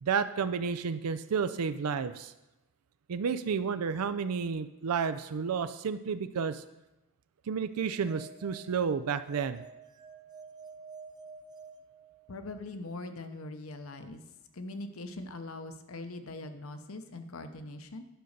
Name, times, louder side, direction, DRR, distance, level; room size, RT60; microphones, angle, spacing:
voice 1, 0.0-2.3 3.1-6.6 7.5-9.6, right 6 dB, 85° right, 11 dB, 0.4 m, -31 dB
sound 1, 7.8-12.6, right 4 dB, 20° right, 0.4 m, -50 dB
voice 2, 12.3-14.2 14.5-18.0, left 2 dB, 65° left, 8 dB, 0.9 m, -42 dB
10.0 x 5.3 x 6.5 m, 0.99 s
head